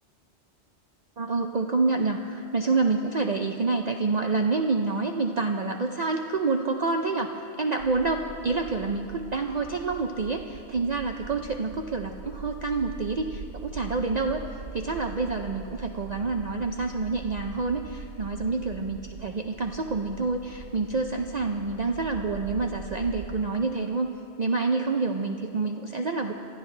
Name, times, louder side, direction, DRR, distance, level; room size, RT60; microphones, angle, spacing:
voice 1, 1.2-14.4 14.7-26.3, right 3 dB, 45° right, 4 dB, 0.6 m, -28 dB
sound 1, 7.8-23.4, right 4 dB, 75° right, 1.1 m, -42 dB
26.5 x 14.0 x 3.3 m, 2.7 s
omnidirectional pair, 1.2 m